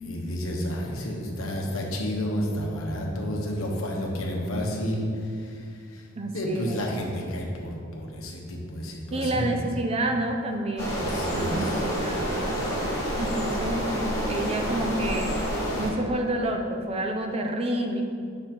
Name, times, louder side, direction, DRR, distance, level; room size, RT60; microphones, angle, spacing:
voice 1, 0.0-6.0 6.3-9.6 10.9-11.8 14.4-14.5 15.8-16.0, equal, 80° left, -1 dB, 1.2 m, -31 dB
voice 2, 6.2-6.9 9.1-12.6 13.2-15.4 15.8-18.0, right 1 dB, 30° right, 3 dB, 0.5 m, -29 dB
sound 1, 10.8-15.9, equal, 20° left, 1.8 m, -28 dB
9.0 x 5.5 x 3.0 m, 2.3 s
head